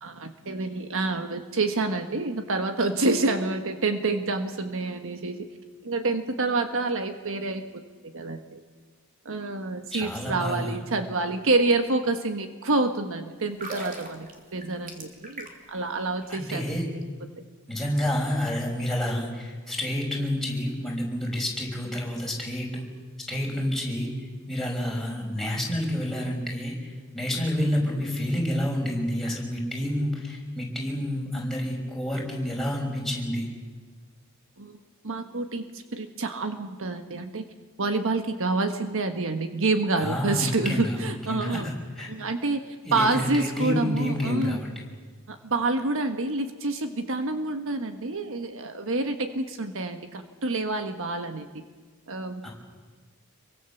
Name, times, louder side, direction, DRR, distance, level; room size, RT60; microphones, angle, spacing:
voice 1, 0.0-5.5 5.8-7.6 8.0-8.6 9.2-16.7 34.6-34.8 35.0-37.4 37.8-41.7 42.1-42.6 42.9-44.6 45.3-51.6 52.1-52.5, right 3 dB, 60° right, 7 dB, 1.4 m, -28 dB
voice 2, 9.9-10.7 16.3-16.8 17.7-22.9 23.3-24.1 24.5-33.5 40.0-42.1 42.9-44.7 52.4-52.5, equal, ahead, -3 dB, 6.0 m, -29 dB
sound 1, 13.4-15.8 16.1-16.3, right 2 dB, 40° right, 3.2 m, -39 dB
27.0 x 23.5 x 7.1 m, 1.5 s
head